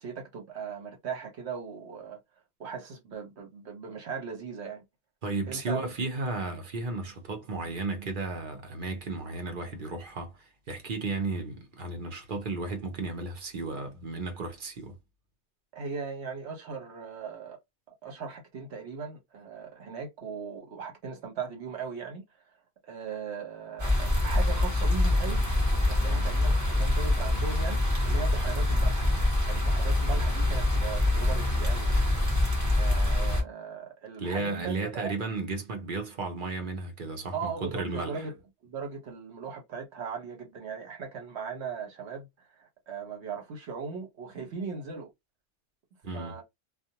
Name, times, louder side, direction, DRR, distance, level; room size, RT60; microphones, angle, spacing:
voice 1, 0.0-2.2 2.6-4.8 5.5-5.9 15.7-17.6 18.0-22.2 22.8-25.4 25.7-29.1 29.5-32.0 32.7-35.1 37.3-38.4 38.6-45.1 46.1-46.4, right 5 dB, 75° right, 1.1 m, -38 dB
voice 2, 5.2-15.0 34.2-38.2 46.0-46.4, right 3 dB, 50° right, 0.8 m, -34 dB
sound 1, 23.8-33.4, left 1 dB, 15° right, 0.9 m, -25 dB
2.5 x 2.1 x 2.7 m
omnidirectional pair, 1.2 m